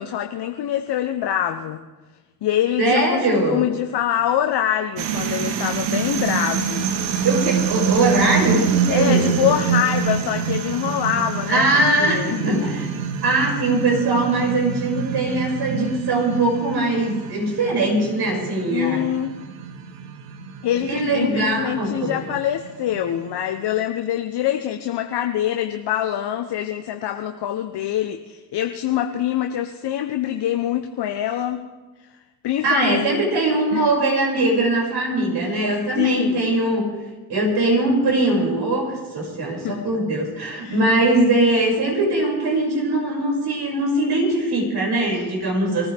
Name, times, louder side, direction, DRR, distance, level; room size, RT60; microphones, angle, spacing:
voice 1, 0.0-1.8 2.4-3.2 3.4-7.2 8.9-12.5 18.7-19.4 20.6-31.6 32.4-33.0 33.7-33.9 36.0-36.5 39.5-39.8 40.6-41.0, left 11 dB, 60° left, 6 dB, 1.1 m, -25 dB
voice 2, 2.8-3.6 7.2-9.6 11.5-12.9 13.2-19.0 20.9-22.1 32.6-36.9 37.3-45.9, right 2 dB, 60° right, -1 dB, 6.6 m, -21 dB
sound 1, 5.0-23.4, right 7 dB, 75° right, 1.3 m, -26 dB
24.0 x 15.0 x 3.6 m, 1.2 s
hypercardioid pair, 50°, 45 cm